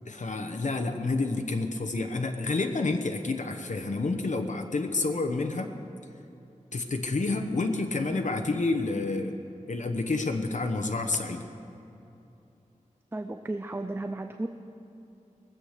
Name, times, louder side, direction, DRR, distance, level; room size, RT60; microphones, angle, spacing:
voice 1, 0.1-5.8 6.7-9.3 9.7-11.4, left 3 dB, 65° left, 5 dB, 1.0 m, -29 dB
voice 2, 13.1-14.5, right 2 dB, 15° right, 7 dB, 0.6 m, -34 dB
21.5 x 8.0 x 6.7 m, 2.9 s
wide cardioid pair, 80°, 14 cm